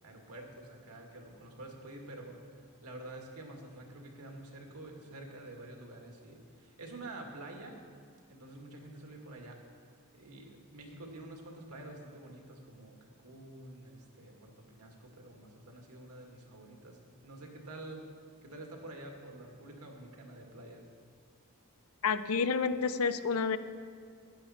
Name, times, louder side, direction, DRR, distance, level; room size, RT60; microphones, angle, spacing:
voice 1, 0.0-7.8 8.3-18.1 18.4-20.8, right 2 dB, 85° right, 1 dB, 2.0 m, -48 dB
voice 2, 22.0-23.6, left 5 dB, 70° left, 12 dB, 0.6 m, -29 dB
15.0 x 10.0 x 4.3 m, 2.2 s
head